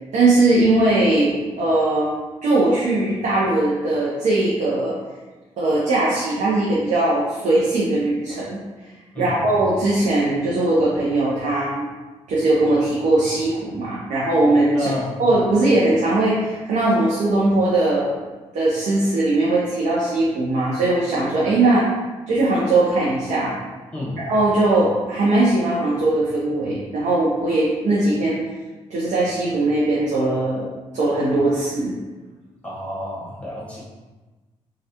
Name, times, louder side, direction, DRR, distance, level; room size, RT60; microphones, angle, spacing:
voice 1, 0.1-2.1 2.4-4.9 5.6-8.6 9.2-11.8 12.3-14.9 15.2-18.1 18.5-21.9 22.3-23.6 24.3-28.4 28.9-30.7 30.9-31.9, right 2 dB, 70° right, -6 dB, 0.7 m, -19 dB
voice 2, 14.7-15.2 23.9-24.3 32.6-33.8, left 1 dB, 10° left, -6 dB, 1.5 m, -30 dB
3.2 x 2.4 x 2.8 m, 1.2 s
supercardioid pair, 60°, 12 cm